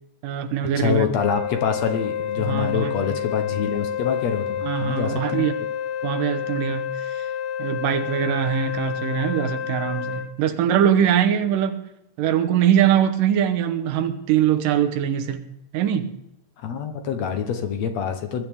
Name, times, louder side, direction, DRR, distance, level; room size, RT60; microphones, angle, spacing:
voice 1, 0.2-1.1 2.4-3.2 4.6-5.6 6.0-7.1 7.6-11.8 12.2-15.4 15.7-16.1, right 9 dB, 90° right, 2.7 m, -22 dB
voice 2, 0.8-5.5 16.6-18.4, left 7 dB, 65° left, 2.0 m, -26 dB
Wind instrument woodwind instrument, 1.2-10.3, left 9 dB, 85° left, 1.3 m, -29 dB
21.0 x 12.5 x 3.6 m
omnidirectional pair, 3.7 m